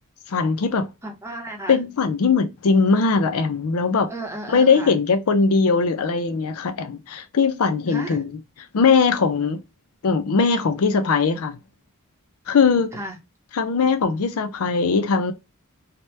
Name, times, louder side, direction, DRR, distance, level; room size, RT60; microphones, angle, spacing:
voice 1, 0.3-0.9 1.7-4.1 4.5-8.3 8.7-9.6 10.0-11.6 12.5-12.9 13.5-15.3, left 5 dB, 85° left, 0.5 m, -20 dB
voice 2, 1.0-1.8 4.1-5.0 7.9-8.3 12.9-13.2, right 1 dB, 10° right, 0.7 m, -34 dB
2.9 x 2.2 x 3.1 m
head